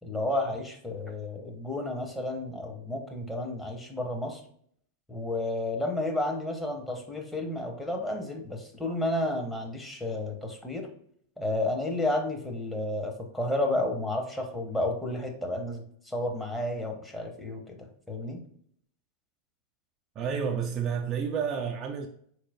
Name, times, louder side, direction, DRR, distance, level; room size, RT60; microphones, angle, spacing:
voice 1, 0.0-4.4 5.1-10.9 11.4-17.8 18.1-18.4, left 1 dB, 5° left, 1.0 m, -31 dB
voice 2, 20.2-22.1, right 6 dB, 30° right, 0.5 m, -30 dB
4.8 x 4.3 x 2.4 m
figure-of-eight pair, 90°, 0 cm